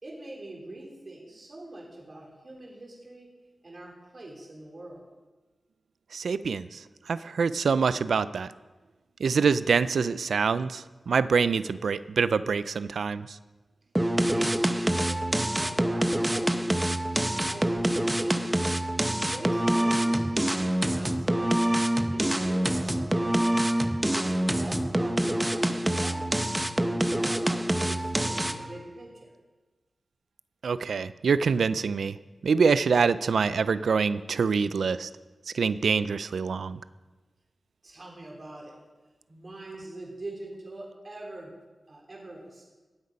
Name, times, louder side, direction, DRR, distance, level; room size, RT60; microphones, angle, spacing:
voice 1, 0.0-3.3 3.6-5.1 14.3-18.5 19.1-21.7 22.1-23.6 24.1-26.3 26.8-29.3 37.8-38.7 39.3-41.5 41.9-42.6, right 2 dB, 50° right, -2 dB, 3.6 m, -43 dB
voice 2, 6.1-8.5 9.2-13.4 30.6-35.1 35.5-36.8, right 5 dB, 90° right, 15 dB, 0.4 m, -25 dB
sound 1, 14.0-28.7, right 1 dB, 15° right, 0.8 m, -26 dB
18.5 x 8.1 x 5.3 m, 1.2 s
wide cardioid pair, 80°, 0 cm